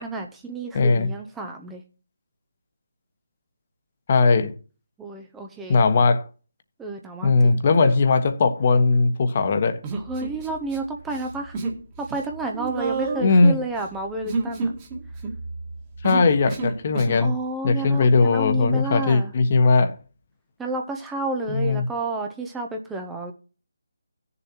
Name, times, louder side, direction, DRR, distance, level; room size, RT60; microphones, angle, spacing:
voice 1, 0.0-1.8 5.0-5.8 6.8-7.6 9.9-11.6 12.0-14.7 17.2-19.3 20.6-23.3, right 2 dB, 5° right, 0.8 m, -31 dB
voice 2, 0.7-1.1 4.1-4.5 5.7-6.3 7.2-9.8 13.2-13.6 16.0-17.3 17.6-19.9 21.5-21.8, left 3 dB, 40° left, 1.3 m, -19 dB
Human voice, 9.8-10.8 11.1-11.8 12.1-17.3, right 3 dB, 25° right, 1.8 m, -30 dB
16.5 x 6.9 x 3.0 m
figure-of-eight pair, 155°, 0 cm